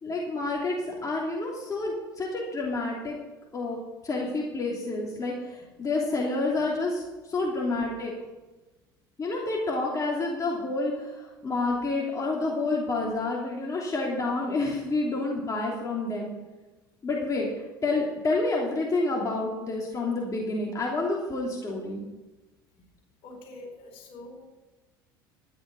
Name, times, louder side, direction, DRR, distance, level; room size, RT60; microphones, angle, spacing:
voice 1, 0.0-3.2 3.5-3.8 4.0-7.0 7.3-8.1 9.2-16.3 17.0-17.5 17.8-22.0, left 2 dB, 30° left, -2 dB, 3.1 m, -29 dB
voice 2, 23.2-24.4, left 2 dB, 55° left, 1 dB, 4.6 m, -44 dB
13.0 x 10.0 x 5.4 m, 1.1 s
hypercardioid pair, 70°, 12 cm